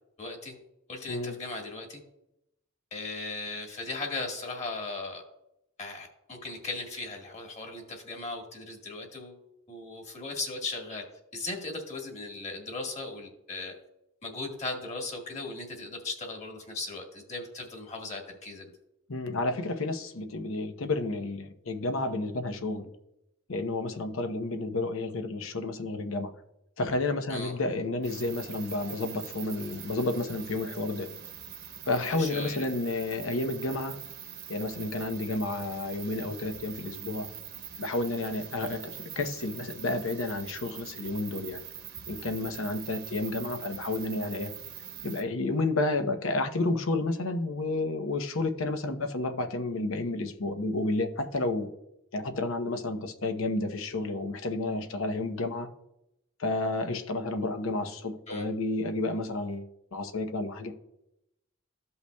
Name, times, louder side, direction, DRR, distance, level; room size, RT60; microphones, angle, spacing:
voice 1, 0.2-0.6 0.9-2.0 2.9-5.2 5.8-9.4 9.7-11.0 11.3-13.7 14.2-18.7 27.3-27.5 32.0-32.7 58.3-58.5, left 3 dB, 35° left, 1.7 m, -37 dB
voice 2, 1.1-1.4 19.1-22.9 23.5-26.3 26.8-31.1 31.9-34.0 34.5-37.3 37.8-41.6 42.1-44.5 45.0-51.7 52.1-55.7 56.4-60.7, left 2 dB, 85° left, 0.8 m, -31 dB
sound 1, 28.0-45.2, right 9 dB, 55° right, 1.0 m, -43 dB
14.5 x 5.6 x 2.3 m
head